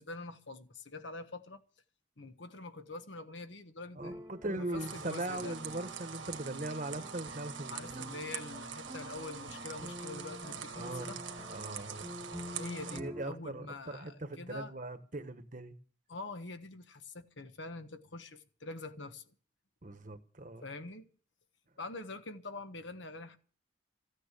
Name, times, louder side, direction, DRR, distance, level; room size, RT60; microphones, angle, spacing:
voice 1, 0.0-1.6 2.2-4.3 4.6-5.6 7.7-11.2 12.5-14.7 16.1-19.2 20.6-21.1 21.8-23.4, left 3 dB, 70° left, 1.3 m, -45 dB
sound 1, 4.0-13.2, left 1 dB, 15° right, 0.9 m, -48 dB
voice 2, 4.0-8.2 10.7-11.2 11.5-12.1 12.9-15.7 19.8-20.7, right 2 dB, 40° right, 1.2 m, -40 dB
sound 2, 4.8-13.0, right 6 dB, 75° right, 1.4 m, -44 dB
15.0 x 9.1 x 8.3 m
head